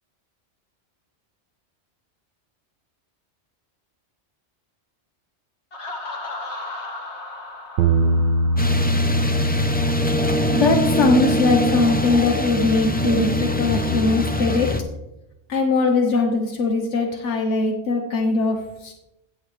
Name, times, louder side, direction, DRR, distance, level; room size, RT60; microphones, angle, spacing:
Laughter, 5.7-9.4, left 2 dB, 70° left, 1.8 m, -35 dB
sound 1, 7.8-14.0, right 1 dB, 75° right, 0.9 m, -24 dB
sound 2, 8.6-14.8, equal, 10° left, 0.5 m, -23 dB
voice 1, 10.5-14.8 15.5-18.9, left 3 dB, 90° left, 2 dB, 1.4 m, -21 dB
16.0 x 7.9 x 3.3 m, 0.92 s
omnidirectional pair, 1.2 m